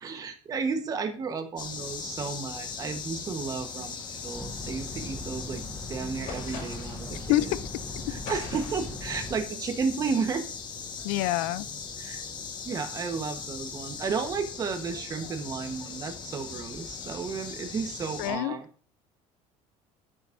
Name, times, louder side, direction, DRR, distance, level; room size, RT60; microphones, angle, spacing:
voice 1, 0.0-5.6 5.9-7.5 8.1-10.4 12.0-12.2 12.6-18.7, right 5 dB, 30° right, 1.1 m, -33 dB
sound 1, 1.6-18.3, left 5 dB, 35° left, 1.4 m, -39 dB
sound 2, 4.3-9.4, left 1 dB, 5° left, 0.9 m, -40 dB
sound 3, 6.3-7.1 8.2-9.0, left 3 dB, 65° left, 4.7 m, -40 dB
voice 2, 11.0-11.7 18.2-18.6, left 16 dB, 85° left, 0.4 m, -26 dB
13.5 x 6.3 x 2.6 m
cardioid pair, 150°, 13 cm